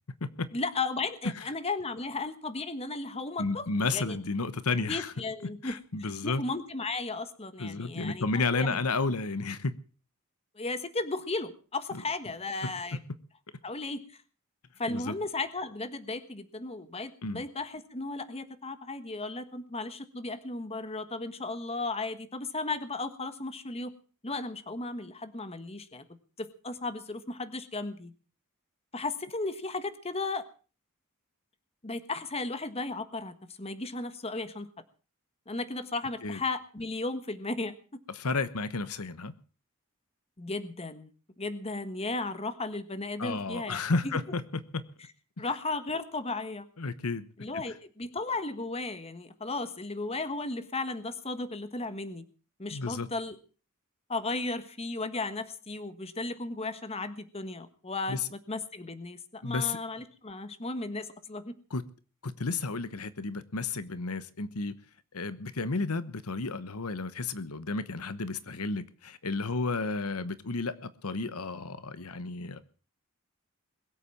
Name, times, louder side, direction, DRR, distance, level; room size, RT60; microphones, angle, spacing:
voice 1, 0.5-4.2 4.9-8.8 10.5-13.0 13.6-14.0 14.8-23.9 24.2-26.0 26.4-28.1 28.9-30.4 31.8-34.7 35.5-37.8 40.4-41.1 41.4-43.8 44.0-44.1 45.4-46.7 47.4-52.2 52.6-53.4 54.1-61.5, left 3 dB, 30° left, 11 dB, 1.4 m, -35 dB
voice 2, 3.4-5.1 5.6-6.4 7.6-9.7 11.9-12.0 12.6-12.7 14.9-15.1 17.2-17.4 36.2-36.4 38.1-39.3 43.2-44.8 46.8-47.3 47.5-47.6 52.7-53.1 58.1-58.2 59.4-59.8 61.7-61.8 62.2-64.7 65.1-72.6, left 3 dB, 85° left, 14 dB, 1.1 m, -32 dB
21.5 x 8.3 x 7.1 m, 0.38 s
head